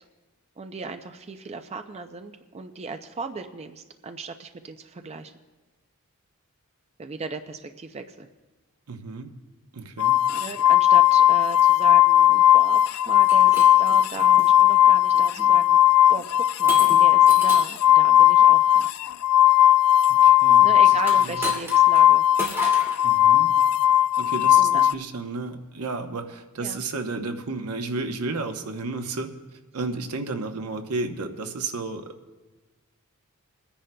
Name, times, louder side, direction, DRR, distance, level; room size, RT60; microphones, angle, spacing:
voice 1, 0.6-5.3 7.0-8.3 10.3-15.8 16.1-18.9 20.6-22.3 24.6-24.8 26.6-26.8, right 4 dB, 30° right, 7 dB, 0.4 m, -36 dB
voice 2, 8.9-9.3 9.7-10.2 20.1-21.4 23.0-23.5 24.2-29.3 29.7-32.1, right 3 dB, 85° right, 6 dB, 0.9 m, -32 dB
sound 1, 10.0-24.9, left 12 dB, 75° left, 0.3 m, -17 dB
Shatter, 13.1-14.5 15.1-15.5 16.7-17.8 21.0-22.0 22.4-23.0, right 1 dB, 10° right, 2.1 m, -34 dB
29.5 x 10.0 x 2.2 m, 1.2 s
head